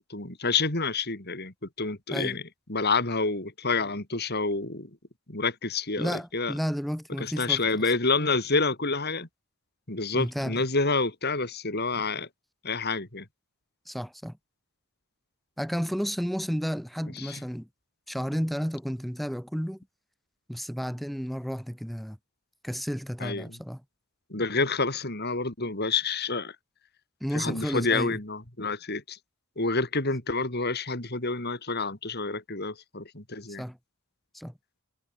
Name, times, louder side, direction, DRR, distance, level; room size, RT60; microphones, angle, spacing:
voice 1, 0.1-2.4 2.7-4.9 5.3-6.5 7.2-9.3 9.9-12.3 12.6-13.3 17.2-17.4 23.2-23.6 24.3-26.6 27.3-29.2 29.6-33.6, left 3 dB, 50° left, 3.9 m, -28 dB
voice 2, 6.0-7.6 10.1-10.6 13.9-14.3 15.6-17.7 18.1-19.8 20.5-22.2 22.6-23.8 27.2-28.2 33.6-33.8 34.3-34.5, equal, ahead, 2.6 m, -32 dB
head